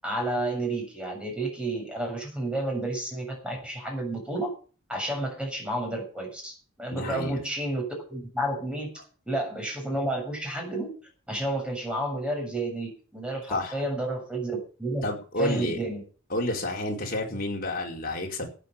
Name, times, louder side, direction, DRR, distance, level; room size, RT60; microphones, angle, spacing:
voice 1, 0.0-4.5 4.9-8.9 9.3-10.9 11.3-15.1 15.4-16.0, right 1 dB, 5° right, 1 dB, 7.2 m, -31 dB
voice 2, 6.9-7.4 13.5-13.8 15.0-15.8 16.3-18.5, left 1 dB, 45° left, 0 dB, 4.5 m, -30 dB
13.5 x 9.5 x 7.0 m, 0.38 s
head